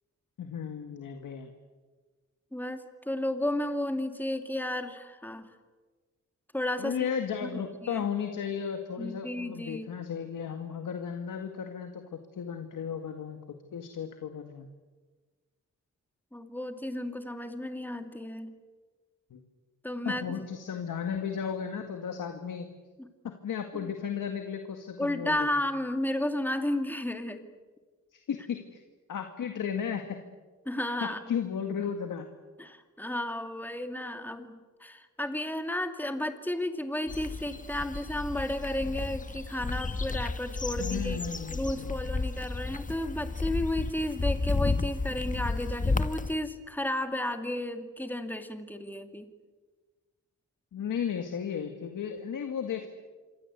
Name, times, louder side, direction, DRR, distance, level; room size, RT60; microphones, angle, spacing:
voice 1, 0.4-1.5 6.8-13.4 13.7-14.7 19.3-19.4 20.1-22.7 23.4-25.6 28.1-28.8 29.1-30.2 31.0-32.3 40.8-42.0 50.7-52.9, left 7 dB, 85° left, 6 dB, 2.1 m, -34 dB
voice 2, 2.5-5.5 6.5-7.1 7.4-7.5 7.8-8.0 9.0-9.9 16.3-18.5 19.8-20.4 23.0-23.1 25.0-27.4 30.7-31.4 32.6-41.2 41.5-49.3, left 1 dB, 5° left, 6 dB, 2.5 m, -33 dB
sound 1, 37.1-46.3, left 3 dB, 25° left, 1.2 m, -32 dB
27.0 x 24.5 x 8.2 m, 1.3 s
wide cardioid pair, 100°, 31 cm